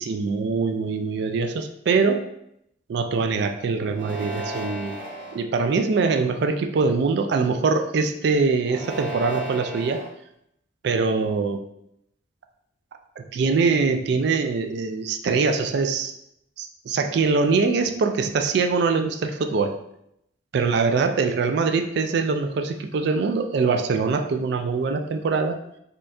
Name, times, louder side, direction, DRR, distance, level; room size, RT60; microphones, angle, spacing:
voice 1, 0.0-2.3 2.9-5.0 5.3-10.0 10.8-11.6 13.2-16.1 16.6-19.7 20.5-25.6, right 4 dB, 55° right, 6 dB, 0.3 m, -23 dB
sound 1, 3.9-5.4 6.1-6.6 8.6-10.1, right 1 dB, 85° right, 1.3 m, -35 dB
4.3 x 2.3 x 2.6 m, 0.77 s
head